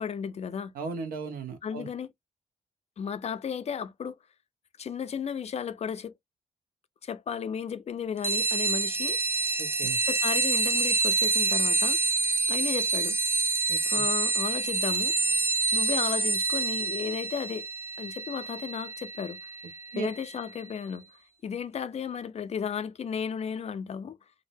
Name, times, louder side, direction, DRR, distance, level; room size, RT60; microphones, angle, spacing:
voice 1, 0.0-0.7 1.6-2.1 3.0-4.2 4.8-6.1 7.0-9.2 10.0-12.0 12.5-13.2 13.9-15.1 15.7-17.7 18.0-19.4 19.9-21.0 21.4-24.2, left 7 dB, 45° left, 0.4 m, -34 dB
voice 2, 0.7-1.9 9.6-10.0 13.7-14.0 19.9-20.1, right 5 dB, 80° right, 0.7 m, -36 dB
sound 1, 8.2-20.3, right 3 dB, 15° right, 0.4 m, -27 dB
2.6 x 2.0 x 2.5 m
supercardioid pair, 50°, 15 cm